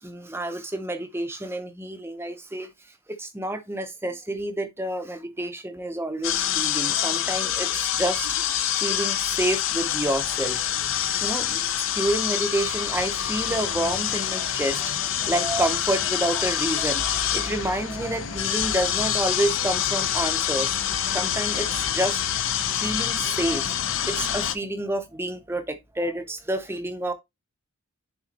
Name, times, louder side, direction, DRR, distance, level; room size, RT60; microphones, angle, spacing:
voice 1, 0.0-2.7 3.1-8.4 8.8-10.6 11.2-11.6 11.9-14.9 15.2-22.2 22.8-23.7 24.0-27.1, right 1 dB, 10° right, 0.6 m, -29 dB
sound 1, 6.2-24.5, left 10 dB, 60° left, 0.6 m, -26 dB
9.9 x 3.8 x 2.9 m
head